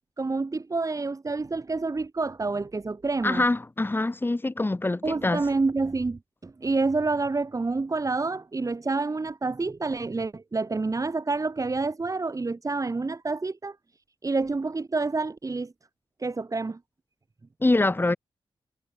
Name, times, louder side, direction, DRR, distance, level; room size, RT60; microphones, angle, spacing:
voice 1, 0.2-3.4 5.0-13.8 14.2-15.7 16.2-16.8, right 3 dB, 35° right, 6.9 m, -28 dB
voice 2, 3.2-5.4 17.6-18.2, left 2 dB, 25° left, 3.4 m, -24 dB
cardioid pair, 75°, 9 cm